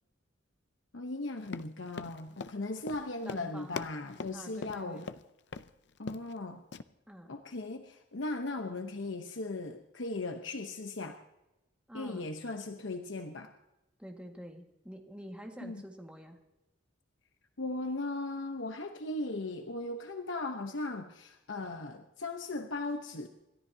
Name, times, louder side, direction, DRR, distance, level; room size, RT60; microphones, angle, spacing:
voice 1, 0.9-5.1 6.0-6.6 7.3-11.2 11.9-13.5 15.6-15.8 17.6-23.3, left 2 dB, 85° left, 6 dB, 1.0 m, -38 dB
Run, 1.4-5.2 5.5-5.7 6.0-6.4 6.7-6.8, left 4 dB, 65° left, 0.6 m, -41 dB
voice 2, 3.2-3.7 4.3-5.1 7.1-7.3 11.9-12.3 14.0-16.4, equal, 5° right, 2 dB, 1.8 m, -47 dB
28.0 x 13.0 x 2.8 m, 0.97 s
head